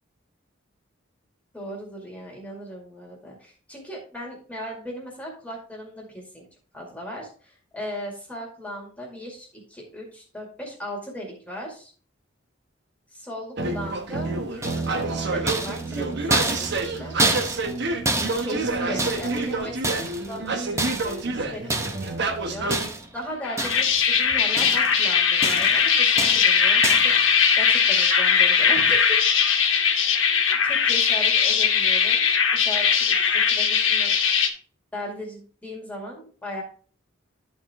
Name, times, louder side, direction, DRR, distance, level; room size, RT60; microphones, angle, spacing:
voice 1, 1.5-6.5 6.7-11.9 13.1-17.2 18.1-19.8 20.2-29.2 30.6-32.2 32.6-34.1 34.9-36.6, equal, 5° left, -2 dB, 2.1 m, -37 dB
sound 1, 13.6-22.9, right 3 dB, 60° right, 1.0 m, -28 dB
sound 2, 14.6-15.1 15.5-17.8 18.0-19.5 19.8-20.4 20.8-21.3 21.7-22.1 22.7-23.2 23.6-24.1 24.3-25.0 25.4-25.8 26.2-26.5 26.8-27.2, right 2 dB, 15° right, 0.8 m, -28 dB
sound 3, 23.4-34.5, left 6 dB, 75° left, 1.2 m, -20 dB
11.0 x 4.5 x 3.5 m, 0.42 s
head